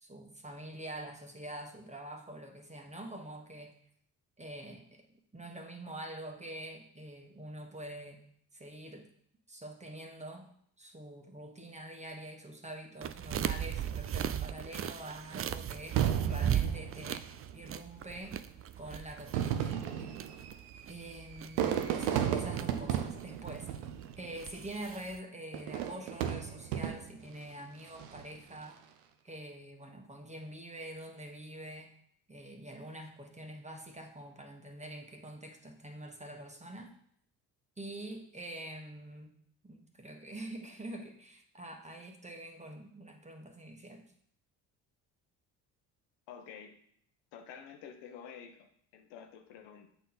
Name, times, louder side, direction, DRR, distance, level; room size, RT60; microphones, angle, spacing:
voice 1, 0.0-3.7 4.4-5.0 5.3-8.2 8.5-9.1 9.5-10.5 10.8-17.3 17.5-18.4 18.8-20.2 20.9-23.7 24.2-28.8 29.2-31.9 32.3-36.9 37.8-39.4 39.6-44.1, right 1 dB, 15° right, 3 dB, 1.4 m, -45 dB
sound 1, 13.0-25.2, right 10 dB, 30° right, 0.4 m, -38 dB
Fireworks, 16.0-17.6 18.4-18.5 19.2-24.5 25.5-27.3 27.9-28.4, right 9 dB, 85° right, 0.8 m, -34 dB
voice 2, 46.3-46.8 47.3-49.9, left 7 dB, 75° left, 5 dB, 1.1 m, -49 dB
8.0 x 4.2 x 4.0 m, 0.65 s
hypercardioid pair, 55°, 45 cm